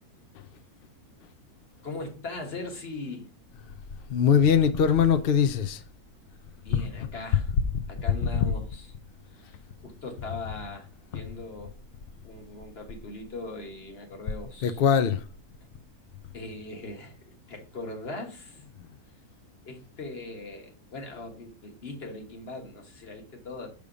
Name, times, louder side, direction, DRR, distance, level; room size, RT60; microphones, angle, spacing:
voice 1, 1.8-3.3 6.6-7.5 7.9-8.9 9.3-9.6 9.8-11.7 12.2-14.8 16.3-18.6 19.6-23.7, left 2 dB, 45° left, 1.5 m, -40 dB
voice 2, 4.1-5.8 14.6-15.2, left 7 dB, 75° left, 0.5 m, -21 dB
6.7 x 3.5 x 4.9 m
omnidirectional pair, 1.6 m